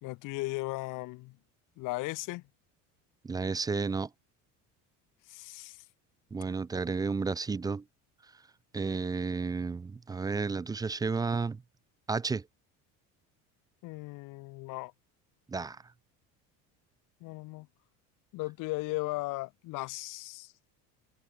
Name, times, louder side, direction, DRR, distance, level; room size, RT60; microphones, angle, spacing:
voice 1, 0.0-1.4 1.8-2.4 5.3-5.8 13.8-14.9 17.2-17.7 18.3-20.5, left 22 dB, 65° left, 1.9 m, -37 dB
voice 2, 3.2-4.1 6.3-7.8 8.7-11.6 12.1-12.5 15.5-15.8, right 4 dB, 10° right, 0.5 m, -32 dB
cardioid pair, 155°, 34 cm